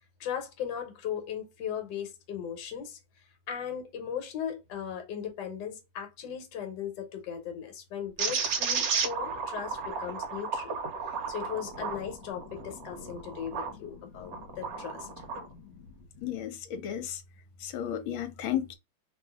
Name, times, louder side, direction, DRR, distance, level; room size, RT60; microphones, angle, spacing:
voice 1, 0.2-3.0 3.5-10.7 11.0-15.1, left 8 dB, 60° left, 1.5 m, -37 dB
sound 1, 8.2-13.7 14.2-15.5, right 5 dB, 60° right, 1.0 m, -33 dB
voice 2, 16.2-17.2 17.6-18.7, left 10 dB, 80° left, 1.5 m, -33 dB
3.0 x 2.6 x 3.4 m
omnidirectional pair, 2.2 m